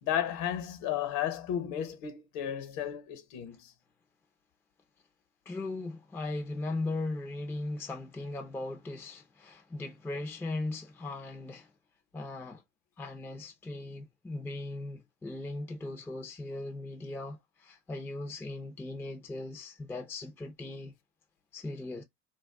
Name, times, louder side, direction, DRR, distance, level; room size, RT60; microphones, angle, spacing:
voice 1, 0.0-3.7, left 10 dB, 60° left, 1.1 m, -33 dB
voice 2, 5.5-11.7 12.1-12.6 13.0-20.9 21.5-22.0, left 2 dB, 5° left, 0.5 m, -38 dB
2.4 x 2.2 x 3.3 m
hypercardioid pair, 90°, 49 cm